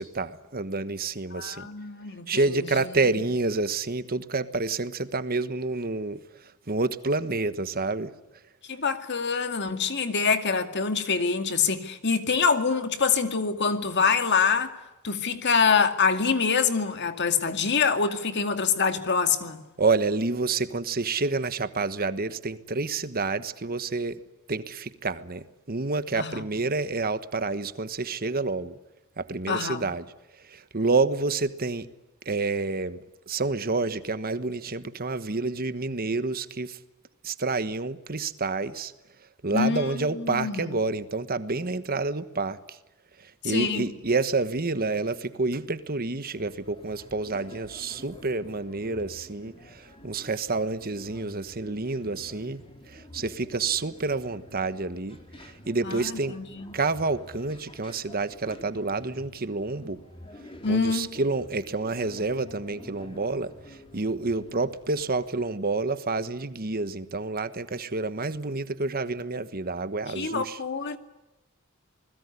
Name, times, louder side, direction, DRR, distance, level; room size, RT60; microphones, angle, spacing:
voice 1, 0.0-1.7 2.3-6.2 6.7-8.1 19.8-24.2 24.5-28.8 29.2-30.0 30.5-31.9 32.2-33.0 33.3-36.8 37.2-38.9 39.4-42.8 43.2-56.4 56.7-60.0 60.7-70.6, right 3 dB, 45° right, 1.3 m, -28 dB
voice 2, 1.3-2.8 8.7-14.7 15.0-19.6 26.1-26.4 29.5-29.9 39.5-40.8 43.4-43.9 55.8-56.7 60.6-61.2 70.2-71.0, left 5 dB, 55° left, 2.3 m, -25 dB
sound 1, 46.3-65.5, left 1 dB, 25° left, 3.5 m, -49 dB
28.0 x 21.0 x 9.8 m
head